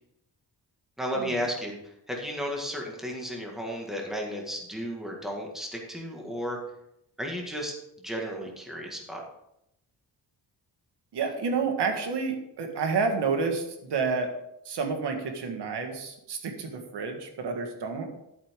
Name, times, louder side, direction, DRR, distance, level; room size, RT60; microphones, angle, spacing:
voice 1, 1.0-1.7 2.1-6.6 7.2-7.7 8.0-9.2, equal, ahead, -1 dB, 1.8 m, -33 dB
voice 2, 11.1-14.3 14.7-18.1, right 4 dB, 85° right, 5 dB, 1.7 m, -29 dB
11.5 x 8.4 x 3.7 m, 0.81 s
wide cardioid pair, 175°, 40 cm